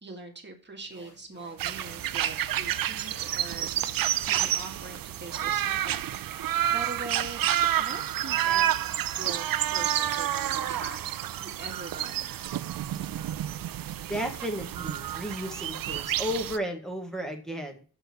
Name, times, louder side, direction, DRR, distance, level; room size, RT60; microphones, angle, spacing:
voice 1, 0.0-7.5 7.7-8.7 9.2-12.2, right 3 dB, 30° right, 2 dB, 1.8 m, -42 dB
sound 1, 0.8-5.9, left 1 dB, 50° left, 3.4 m, -55 dB
sound 2, 1.6-16.6, right 11 dB, 65° right, 0.5 m, -29 dB
voice 2, 14.1-17.8, equal, ahead, 4 dB, 1.6 m, -33 dB
6.8 x 4.5 x 6.7 m, 0.39 s
wide cardioid pair, 120°, 38 cm